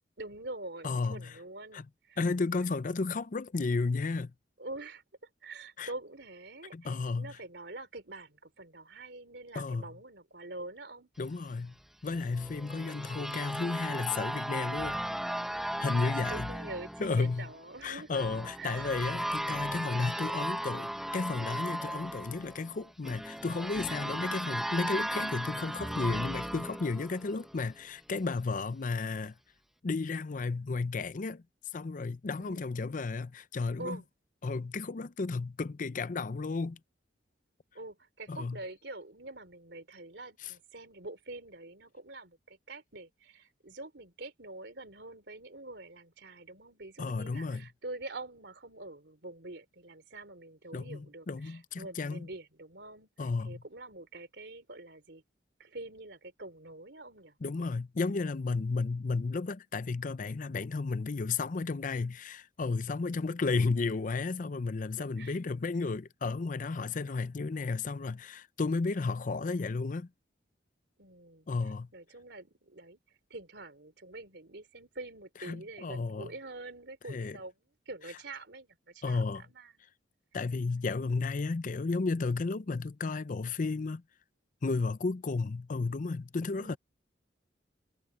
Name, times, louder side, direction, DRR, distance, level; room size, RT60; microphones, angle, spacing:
voice 1, 0.2-2.2 2.8-2.9 4.6-5.0 5.4-11.1 15.9-18.2 18.6-18.9 32.4-32.7 33.8-34.1 37.7-55.2 55.6-57.4 65.2-65.4 71.0-71.5 71.9-73.0 73.3-77.5 77.9-79.8 86.5-86.8, right 2 dB, 70° right, 3.6 m, -45 dB
voice 2, 0.8-1.3 1.7-1.8 2.2-4.3 5.8-5.9 6.7-7.3 9.5-9.8 11.2-11.7 12.0-15.0 15.8-16.5 17.0-17.5 17.8-29.3 29.8-31.4 31.7-34.0 34.4-36.8 38.3-38.6 40.4-40.5 47.0-47.7 50.7-52.3 53.2-53.6 57.4-70.1 71.5-71.9 75.4-76.3 77.1-77.4 79.0-79.4 80.3-84.0 84.6-86.8, left 4 dB, 45° left, 0.5 m, -33 dB
sound 1, 12.1-27.7, equal, ahead, 0.8 m, -36 dB
head